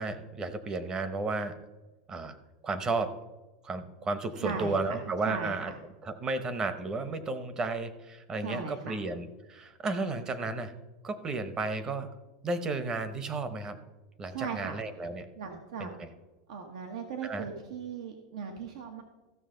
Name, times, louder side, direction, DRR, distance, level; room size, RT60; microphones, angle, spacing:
voice 1, 0.0-1.6 2.1-2.4 2.6-3.2 3.6-5.7 6.0-10.7 11.0-12.1 12.4-13.8 14.2-15.3 15.8-16.1 17.2-17.5, right 3 dB, 20° right, 11 dB, 0.8 m, -33 dB
voice 2, 4.4-5.0 5.2-5.5 8.4-9.0 14.3-14.8 15.4-15.9 16.5-19.0, right 6 dB, 80° right, 4 dB, 1.2 m, -38 dB
14.5 x 6.3 x 3.8 m, 1.2 s
supercardioid pair, 145°, 3 cm